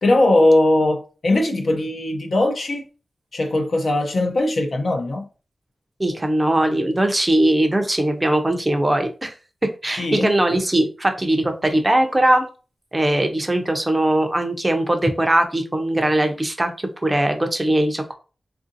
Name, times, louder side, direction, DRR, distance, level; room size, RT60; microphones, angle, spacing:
voice 1, 0.0-2.8 3.3-5.2 10.0-10.3, left 1 dB, 60° left, 0.7 m, -19 dB
voice 2, 6.0-9.3 9.8-12.4 12.9-18.1, right 1 dB, 20° right, 0.5 m, -20 dB
3.5 x 2.5 x 2.6 m
wide cardioid pair, 125°, 0 cm